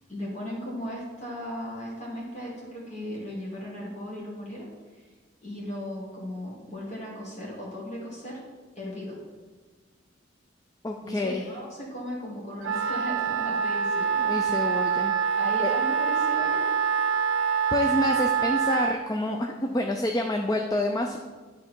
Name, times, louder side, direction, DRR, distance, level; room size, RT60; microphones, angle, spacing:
voice 1, 0.1-4.7 5.4-8.4 8.8-9.2 11.0-14.3 15.4-16.6, equal, 35° left, -4 dB, 1.9 m, -36 dB
voice 2, 10.8-11.5 14.2-15.1 15.6-15.7 17.7-21.2, left 1 dB, 20° left, 3 dB, 0.4 m, -28 dB
Wind instrument woodwind instrument, 12.6-19.0, right 6 dB, 90° right, 0.4 m, -25 dB
11.0 x 3.7 x 4.5 m, 1.4 s
head